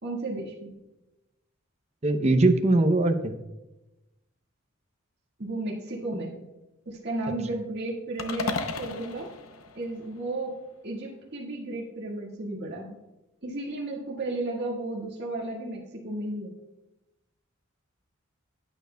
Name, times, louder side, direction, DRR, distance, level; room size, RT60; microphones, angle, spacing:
voice 1, 0.0-0.8 5.4-6.4 6.9-9.3 9.8-10.6 10.8-13.0 13.4-16.5, right 2 dB, 55° right, -3 dB, 1.8 m, -33 dB
voice 2, 2.0-3.3, right 2 dB, 30° right, 5 dB, 0.6 m, -21 dB
sound 1, 8.2-10.5, left 3 dB, 90° left, 0.8 m, -35 dB
14.0 x 9.1 x 2.2 m, 1.0 s
head